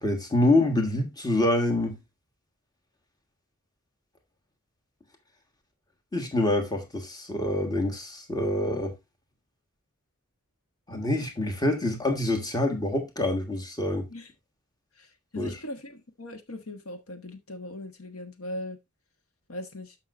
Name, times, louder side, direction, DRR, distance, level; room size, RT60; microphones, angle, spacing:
voice 1, 0.0-2.0 6.1-8.9 10.9-14.1 15.3-15.6, left 1 dB, 20° left, 1.5 m, -26 dB
voice 2, 15.3-18.8 19.5-20.0, left 1 dB, 65° left, 1.3 m, -39 dB
13.0 x 5.8 x 2.5 m
head